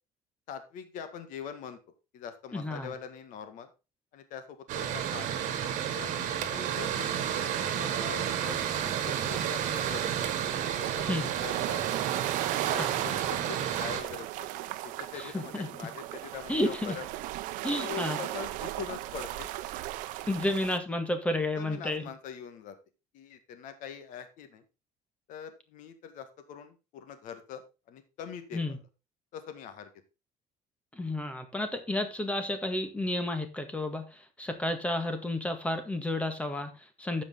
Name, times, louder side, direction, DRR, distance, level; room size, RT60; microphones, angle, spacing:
voice 1, 0.5-1.8 2.1-3.7 4.1-5.3 6.0-7.3 7.6-8.6 9.0-10.1 10.7-11.8 12.7-14.5 14.8-17.1 17.7-19.5 21.6-22.7 23.1-24.6 25.3-27.6 27.9-28.8 29.3-29.9, left 7 dB, 75° left, 9 dB, 1.9 m, -43 dB
voice 2, 2.5-2.9 11.1-11.3 12.8-12.9 15.2-15.7 16.5-17.0 17.6-18.2 20.3-22.1 28.5-28.8 30.9-37.2, left 1 dB, 10° left, 7 dB, 1.7 m, -31 dB
Mechanical fan, 4.7-14.0, right 9 dB, 70° right, 1.8 m, -31 dB
sound 1, 8.4-20.8, right 15 dB, 90° right, 0.7 m, -37 dB
14.0 x 5.2 x 3.8 m, 0.28 s
cardioid pair, 135°, 13 cm